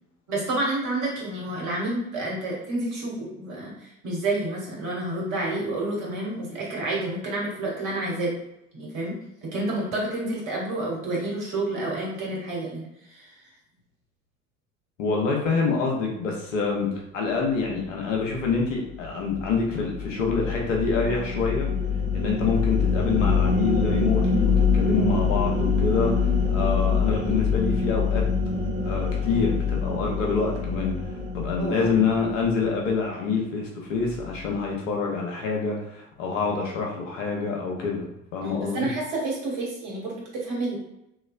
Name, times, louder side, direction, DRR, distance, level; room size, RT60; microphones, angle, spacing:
voice 1, 0.3-8.3 8.7-13.3 31.6-31.9 38.4-40.8, right 2 dB, 50° right, -4 dB, 1.4 m, -29 dB
voice 2, 15.0-16.9 17.1-21.7 22.1-28.2 28.9-38.9, left 4 dB, 65° left, 0 dB, 0.9 m, -26 dB
sound 1, 18.3-32.8, left 5 dB, 15° left, 1.4 m, -25 dB
3.1 x 3.0 x 2.4 m, 0.85 s
figure-of-eight pair, 65°, 40 cm